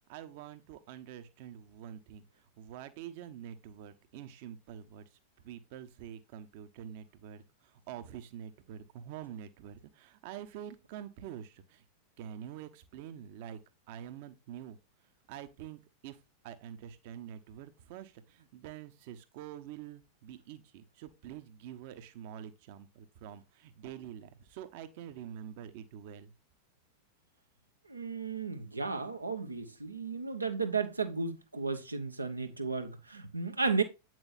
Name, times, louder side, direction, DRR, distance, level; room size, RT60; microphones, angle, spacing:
voice 1, 0.1-2.3 2.6-5.0 5.4-11.8 12.2-13.6 13.9-14.8 15.3-16.2 16.4-26.3, right 10 dB, 50° right, 1.0 m, -46 dB
voice 2, 27.9-33.8, right 4 dB, 80° right, 1.1 m, -34 dB
8.8 x 6.2 x 2.6 m
figure-of-eight pair, 90°, 0 cm